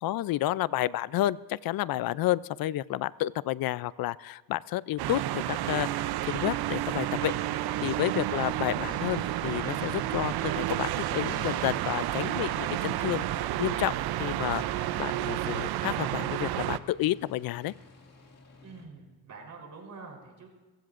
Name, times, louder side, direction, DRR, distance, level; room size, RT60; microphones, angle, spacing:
voice 1, 0.0-7.3 7.8-13.2 13.6-13.9 14.2-17.7, left 15 dB, 65° left, 20 dB, 0.5 m, -30 dB
sound 1, 5.0-16.8, right 14 dB, 80° right, 0.6 m, -31 dB
Aircraft, 7.3-18.9, left 3 dB, 40° left, 2.3 m, -51 dB
warmup Mixdown, 8.3-15.2, right 2 dB, 15° right, 6.9 m, -51 dB
voice 2, 18.6-20.5, right 4 dB, 55° right, 0 dB, 3.8 m, -46 dB
29.5 x 15.5 x 2.5 m, 1.2 s
cardioid pair, 105°, 38 cm